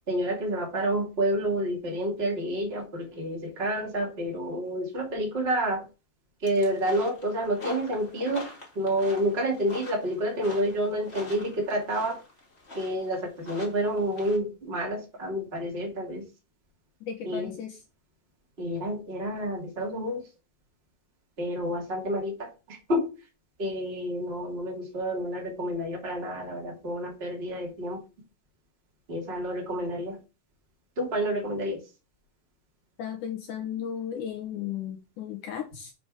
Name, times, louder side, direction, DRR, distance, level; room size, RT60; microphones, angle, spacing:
voice 1, 0.1-5.8 6.4-8.4 8.7-12.2 12.7-16.2 17.2-17.5 18.6-20.2 21.4-23.0 23.6-28.0 29.1-30.2 31.0-31.8, equal, 20° right, 0 dB, 1.6 m, -29 dB
sound 1, 6.4-14.4, left 2 dB, 25° left, 1.3 m, -44 dB
voice 2, 17.1-17.8 33.0-35.9, left 9 dB, 70° left, 2 dB, 2.1 m, -35 dB
7.0 x 5.0 x 4.8 m, 0.30 s
omnidirectional pair, 4.8 m